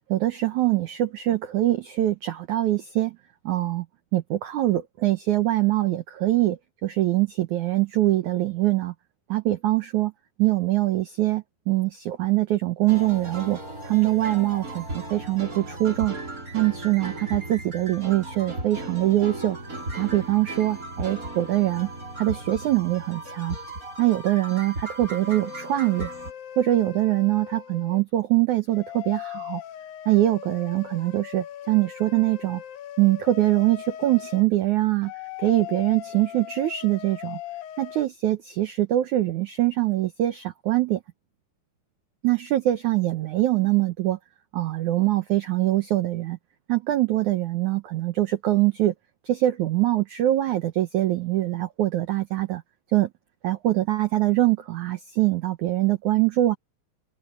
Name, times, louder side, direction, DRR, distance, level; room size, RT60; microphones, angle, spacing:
voice 1, 0.1-3.2 3.4-3.8 4.1-8.9 9.3-10.1 10.4-13.6 13.8-16.2 16.5-19.6 19.9-21.9 22.2-23.6 24.0-26.1 26.6-29.6 30.0-32.6 33.0-35.1 35.4-37.4 37.8-41.0 42.2-44.2 44.5-46.4 46.7-48.9 49.2-52.6 52.9-53.1 53.4-56.6, right 15 dB, 90° right, 1.6 m, -23 dB
sound 1, 12.9-26.3, right 1 dB, 20° right, 4.7 m, -36 dB
sound 2, 25.2-28.0 28.7-34.4 35.0-38.1, left 12 dB, 65° left, 2.6 m, -39 dB
omnidirectional pair, 4.9 m